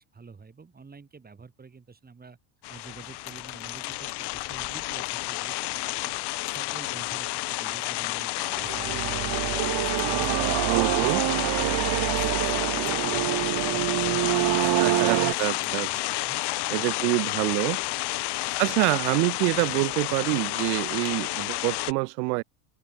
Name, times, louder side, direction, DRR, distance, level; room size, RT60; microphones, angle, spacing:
voice 1, 0.0-2.4 2.7-6.2 6.5-8.3 8.6-9.6 10.0-15.1 15.4-17.1 17.9-18.1, right 4 dB, 20° right, 7.0 m, -48 dB
sound 1, 2.6-21.9, left 20 dB, 55° left, 1.2 m, -30 dB
sound 2, 8.4-15.3, right 20 dB, 55° right, 1.4 m, -26 dB
voice 2, 10.5-11.2 14.8-15.9 16.7-17.8 18.6-22.4, right 32 dB, 85° right, 1.5 m, -26 dB
open air
cardioid pair, 130°, 49 cm